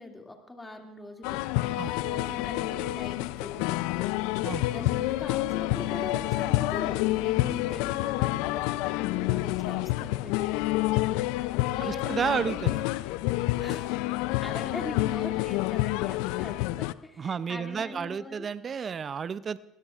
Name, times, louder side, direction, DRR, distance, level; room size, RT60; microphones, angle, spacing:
voice 1, 0.0-4.1 4.7-12.6 13.6-18.5, left 2 dB, 15° left, 2 dB, 2.3 m, -42 dB
sound 1, 1.2-16.9, left 17 dB, 75° left, 0.4 m, -28 dB
voice 2, 11.8-12.8 17.2-19.6, right 6 dB, 35° right, 16 dB, 0.5 m, -31 dB
22.5 x 16.5 x 2.4 m, 0.90 s
supercardioid pair, 85°, 0 cm